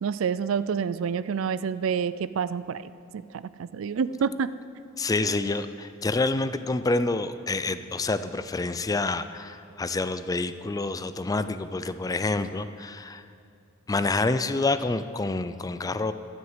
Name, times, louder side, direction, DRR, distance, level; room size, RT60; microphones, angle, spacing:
voice 1, 0.0-4.5, right 6 dB, 70° right, 15 dB, 0.4 m, -28 dB
voice 2, 5.0-13.2 13.9-16.1, left 3 dB, 15° left, 12 dB, 0.4 m, -27 dB
12.0 x 7.9 x 8.1 m, 2.4 s
head